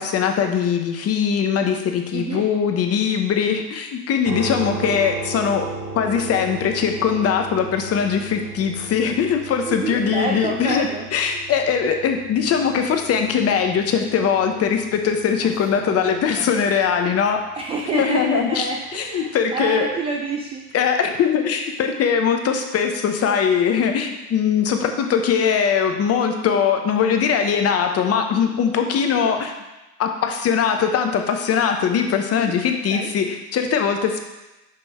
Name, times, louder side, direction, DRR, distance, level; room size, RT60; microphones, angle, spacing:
voice 1, 0.0-5.7 5.9-17.4 17.9-18.7 18.9-19.9 20.7-29.5 30.0-34.2, left 7 dB, 30° left, 5 dB, 0.9 m, -21 dB
voice 2, 2.1-2.4 9.6-11.0 15.4-16.5 17.6-20.8 29.0-29.4 32.3-32.6 32.9-33.1, right 4 dB, 15° right, 0 dB, 0.3 m, -29 dB
sound 1, 4.2-18.3, right 3 dB, 35° right, 1.5 m, -36 dB
5.4 x 5.2 x 4.2 m, 1.0 s
hypercardioid pair, 95°, 48 cm